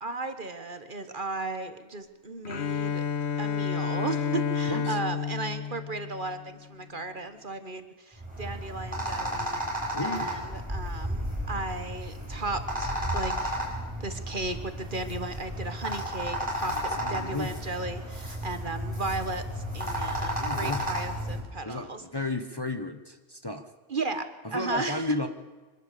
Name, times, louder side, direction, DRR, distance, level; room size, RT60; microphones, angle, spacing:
voice 1, 0.0-3.0 3.4-13.6 14.0-22.0 23.9-25.2, right 3 dB, 45° right, 9 dB, 1.6 m, -35 dB
Bowed string instrument, 2.5-6.5, left 6 dB, 70° left, 1.3 m, -30 dB
sound 1, 8.2-21.4, equal, 5° right, 7.1 m, -33 dB
voice 2, 9.9-10.3 16.6-17.6 20.4-20.8 21.6-21.9 22.1-23.6 24.5-25.3, left 2 dB, 20° left, 7 dB, 1.1 m, -33 dB
24.5 x 13.0 x 8.4 m, 1.3 s
omnidirectional pair, 1.2 m